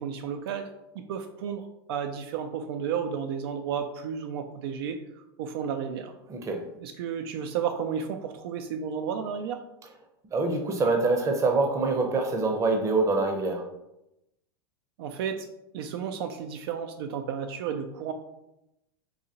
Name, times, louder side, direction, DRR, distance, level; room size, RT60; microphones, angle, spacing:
voice 1, 0.0-6.1 6.8-9.6 15.0-15.5 15.7-18.1, right 7 dB, 70° right, 6 dB, 0.4 m, -32 dB
voice 2, 6.3-6.6 10.3-13.6, right 3 dB, 25° right, 4 dB, 0.6 m, -25 dB
3.9 x 2.8 x 2.8 m, 0.89 s
supercardioid pair, 120°, 13 cm